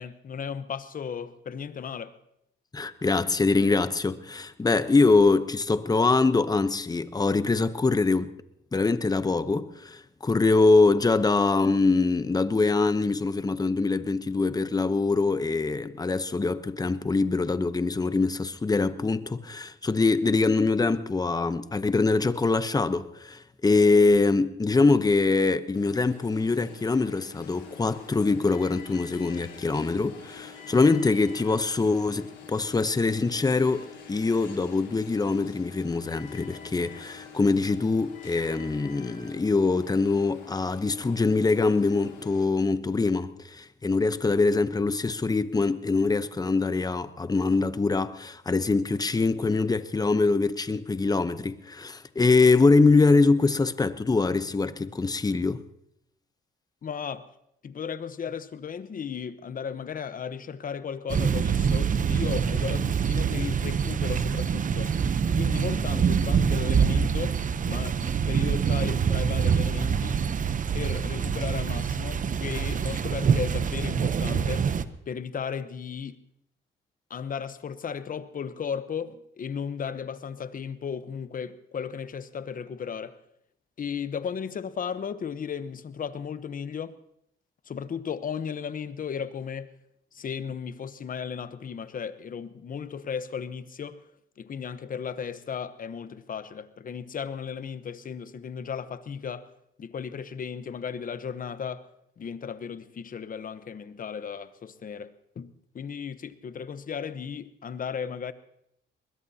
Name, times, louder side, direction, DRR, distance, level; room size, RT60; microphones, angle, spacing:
voice 1, 0.0-2.2 56.8-57.3 57.6-64.9 65.3-67.4 67.6-70.2 70.7-74.7 75.1-76.2 77.1-83.2 83.8-87.0 87.7-89.7 90.1-94.0 94.4-99.5 99.8-101.9 102.2-108.3, left 7 dB, 45° left, 1.0 m, -35 dB
voice 2, 2.7-8.3 8.7-55.6, left 3 dB, 20° left, 0.9 m, -24 dB
Alarm, 25.8-42.5, left 7 dB, 75° left, 3.9 m, -46 dB
sound 1, 61.1-74.8, right 7 dB, 40° right, 0.8 m, -25 dB
22.0 x 20.5 x 2.8 m
cardioid pair, 90°, 20 cm